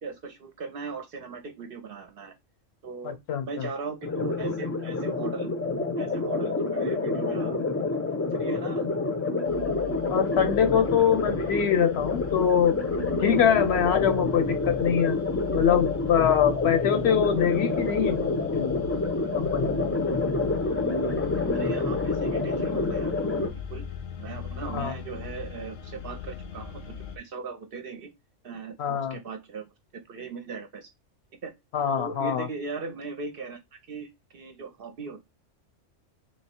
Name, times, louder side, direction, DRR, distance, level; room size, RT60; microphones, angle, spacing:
voice 1, 0.0-2.3 2.8-3.2 3.5-5.5 6.0-7.5 7.9-8.9 21.5-23.9 24.2-28.1 28.4-29.7 30.1-30.9 31.4-31.5 31.9-35.2, right 4 dB, 60° right, 0.7 m, -38 dB
voice 2, 3.0-3.7 10.1-12.8 13.2-15.2 15.5-18.9 19.3-19.8 24.7-24.9 28.8-29.2 31.7-32.5, left 8 dB, 65° left, 0.8 m, -24 dB
sound 1, 4.0-23.5, left 3 dB, 20° left, 0.3 m, -28 dB
sound 2, 9.4-27.2, left 8 dB, 85° left, 1.1 m, -40 dB
3.2 x 2.9 x 4.3 m
omnidirectional pair, 1.3 m